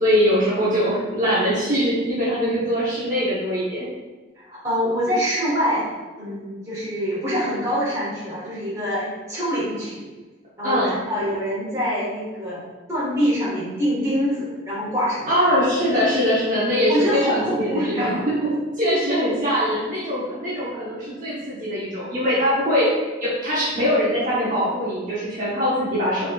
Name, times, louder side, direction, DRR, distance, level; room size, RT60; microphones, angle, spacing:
voice 1, 0.0-3.8 10.6-10.9 15.3-18.3 18.8-22.9 23.2-26.3, equal, 45° right, -9 dB, 0.9 m, -22 dB
voice 2, 4.4-5.8 6.2-10.0 10.6-12.6 12.9-15.3 16.9-18.2, equal, 15° right, -8 dB, 1.4 m, -25 dB
4.1 x 3.7 x 2.3 m, 1.2 s
head